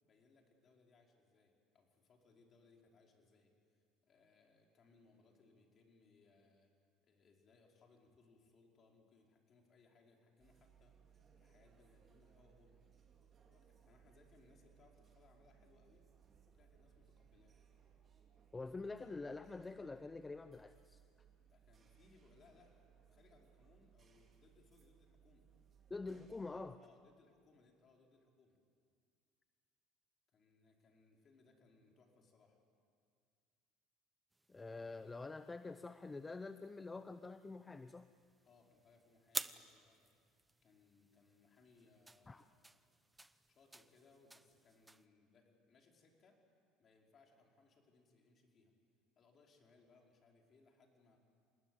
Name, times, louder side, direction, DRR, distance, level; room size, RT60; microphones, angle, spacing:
voice 1, 0.0-6.7 7.0-11.0 11.4-12.8 13.4-16.0 16.5-17.5 21.4-25.5 26.8-28.6 30.3-32.6 38.4-42.9 43.5-46.4 46.8-48.7 49.1-51.2, left 3 dB, 40° left, 1 dB, 5.1 m, -69 dB
sound 1, 10.4-26.8, right 8 dB, 35° right, 3.5 m, -67 dB
voice 2, 18.5-21.0 25.9-26.8 34.5-38.1 42.3-42.5, left 3 dB, 20° left, 11 dB, 0.8 m, -47 dB
sound 2, 34.3-45.1, right 2 dB, 10° right, 0.9 m, -52 dB
27.5 x 20.0 x 8.1 m, 2.2 s
supercardioid pair, 85°, 0 cm